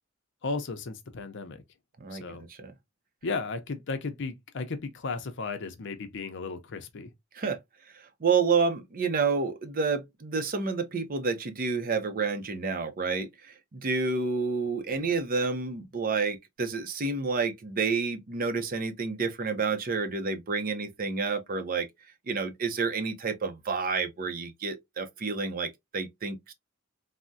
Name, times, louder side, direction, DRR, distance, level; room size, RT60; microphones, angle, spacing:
voice 1, 0.4-1.6 2.1-2.4 3.2-7.1, left 4 dB, 60° left, 0.6 m, -35 dB
voice 2, 2.0-2.7 7.3-7.6 7.9-21.9 22.3-26.5, right 4 dB, 45° right, 0.5 m, -29 dB
3.4 x 2.1 x 2.6 m
head